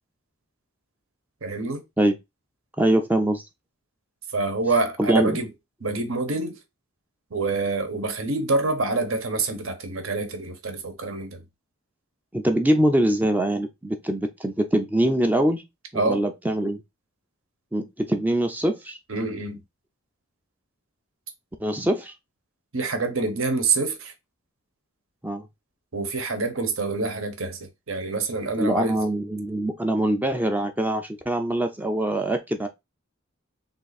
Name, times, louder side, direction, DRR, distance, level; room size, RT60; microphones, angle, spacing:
voice 1, 1.4-1.8 4.3-5.5 5.8-6.6 7.3-11.4 15.9-16.2 19.1-19.6 22.7-24.1 25.9-29.0, right 3 dB, 70° right, 1.0 m, -26 dB
voice 2, 2.8-3.4 5.0-5.3 12.3-15.6 15.9-16.8 17.7-19.0 21.6-22.1 25.2-25.4 28.6-32.7, right 1 dB, 10° right, 0.4 m, -23 dB
3.7 x 2.6 x 4.0 m
head